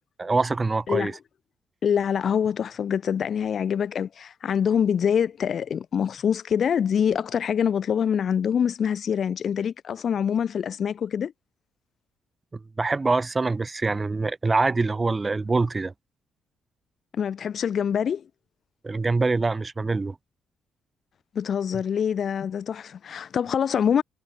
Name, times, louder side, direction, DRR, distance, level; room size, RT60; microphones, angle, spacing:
voice 1, 0.2-1.1 12.5-15.9 18.8-20.2, right 3 dB, 25° right, 6.4 m, -24 dB
voice 2, 1.8-11.3 17.1-18.2 21.4-24.0, left 8 dB, 55° left, 1.6 m, -25 dB
cardioid pair, 90°, 0 cm